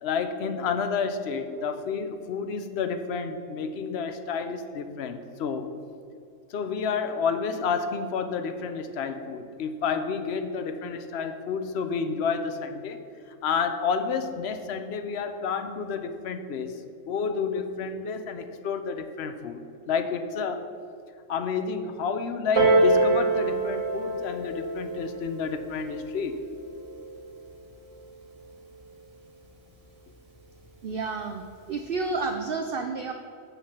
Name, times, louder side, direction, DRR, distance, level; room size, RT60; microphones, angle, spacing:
voice 1, 0.0-5.7 6.5-13.0 13.3-20.7 21.3-26.4, left 5 dB, 60° left, 8 dB, 0.9 m, -30 dB
Piano, 22.6-27.7 28.6-28.7, right 2 dB, 90° right, 2.4 m, -26 dB
voice 2, 30.8-33.1, right 4 dB, 60° right, 6 dB, 0.6 m, -30 dB
7.4 x 5.7 x 7.1 m, 2.4 s
omnidirectional pair, 1.4 m